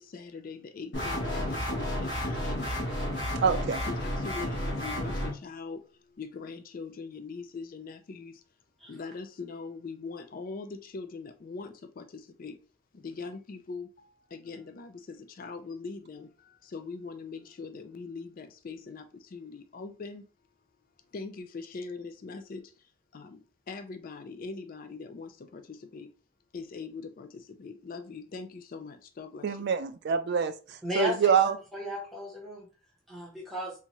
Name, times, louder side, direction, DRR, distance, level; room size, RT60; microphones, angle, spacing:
voice 1, 0.0-3.3 3.9-8.4 8.9-12.6 12.9-20.2 21.1-26.1 26.5-29.7, left 4 dB, 45° left, 0.4 m, -42 dB
sound 1, 0.9-5.3, left 1 dB, 60° left, 1.0 m, -31 dB
voice 2, 3.4-3.8 29.4-30.5 31.0-31.6, right 6 dB, 55° right, 0.3 m, -25 dB
voice 3, 30.8-31.3 31.7-32.7 33.1-33.7, equal, ahead, 0.8 m, -34 dB
3.4 x 2.8 x 2.9 m
head